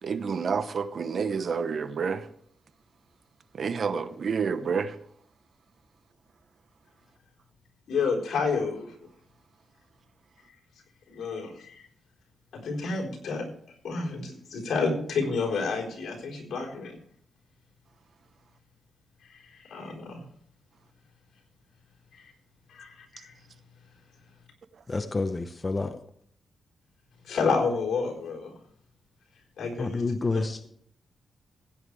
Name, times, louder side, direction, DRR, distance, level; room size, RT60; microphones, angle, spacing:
voice 1, 0.0-2.3 3.5-5.0, right 5 dB, 55° right, 0.9 m, -29 dB
voice 2, 7.9-8.9 11.1-11.8 12.5-13.4 13.8-16.9 19.7-20.2 22.7-22.9 23.2-23.3 27.3-28.5 29.6-30.0, left 4 dB, 80° left, 4.3 m, -29 dB
voice 3, 24.9-26.0 29.8-30.7, left 3 dB, 30° left, 0.7 m, -29 dB
15.5 x 9.4 x 3.4 m
cardioid pair, 105°, 0 cm